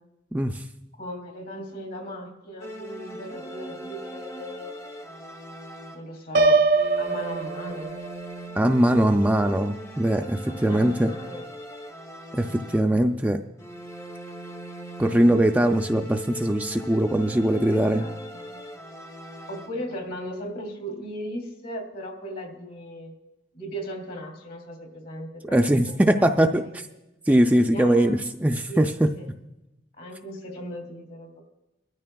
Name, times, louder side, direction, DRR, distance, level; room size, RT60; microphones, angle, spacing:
voice 1, 0.3-0.6 8.6-11.1 12.3-13.4 15.0-18.1 25.4-26.9 27.3-29.1, right 1 dB, 10° right, 5 dB, 0.4 m, -21 dB
voice 2, 1.0-5.0 5.9-6.7 7.0-7.9 10.4-11.5 15.8-15.9 17.7-18.7 19.5-23.2 23.5-26.7 27.6-28.2 28.7-28.8 29.1-29.3 30.0-31.4, equal, 60° left, 3 dB, 2.8 m, -37 dB
sound 1, 2.6-6.3 6.7-13.2 13.6-20.0, right 1 dB, 15° left, 0.7 m, -40 dB
Piano, 6.3-8.3, right 3 dB, 65° right, 0.6 m, -22 dB
23.0 x 12.5 x 2.3 m, 0.94 s
head